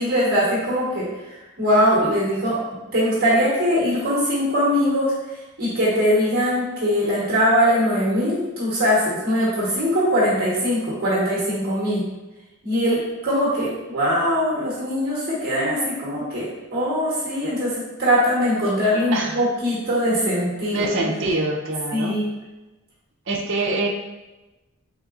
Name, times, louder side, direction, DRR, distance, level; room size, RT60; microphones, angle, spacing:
voice 1, 0.0-2.6 2.9-12.1 12.6-21.1 21.9-22.3, equal, 50° right, -7 dB, 1.2 m, -21 dB
voice 2, 20.7-22.1 23.3-23.9, right 2 dB, 65° right, 0 dB, 0.6 m, -24 dB
4.0 x 3.9 x 2.4 m, 1.1 s
head